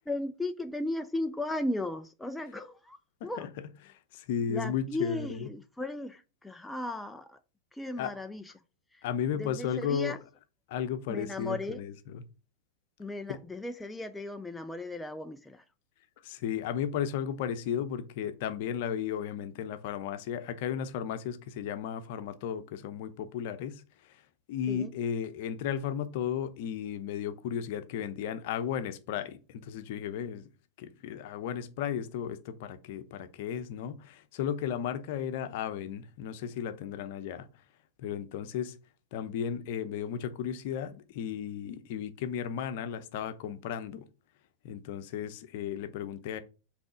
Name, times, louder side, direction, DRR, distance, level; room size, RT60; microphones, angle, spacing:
voice 1, 0.1-3.5 4.5-7.4 7.7-8.5 8.9-9.0 9.4-10.2 11.1-11.8 13.0-15.6 24.7-24.9, left 2 dB, 5° left, 0.4 m, -36 dB
voice 2, 3.9-5.5 8.0-8.1 9.0-10.1 10.7-12.2 16.2-23.8 24.5-30.5 30.8-37.5 38.0-38.8 39.1-44.1 44.6-46.4, left 8 dB, 50° left, 0.8 m, -34 dB
7.8 x 3.4 x 4.9 m
figure-of-eight pair, 90°, 0 cm